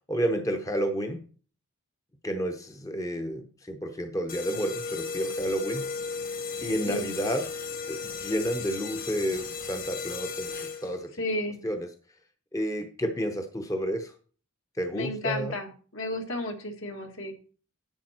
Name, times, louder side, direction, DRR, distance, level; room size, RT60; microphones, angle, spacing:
voice 1, 0.1-1.2 2.2-5.9 6.6-7.5 7.9-11.1 11.6-11.9 12.5-14.1 14.8-15.5, equal, 15° left, 6 dB, 0.7 m, -30 dB
sound 1, 4.3-11.1, left 5 dB, 40° left, 1.1 m, -35 dB
voice 2, 11.2-11.6 14.9-17.3, left 1 dB, 65° left, 4 dB, 1.8 m, -32 dB
11.0 x 8.4 x 4.3 m, 0.40 s
head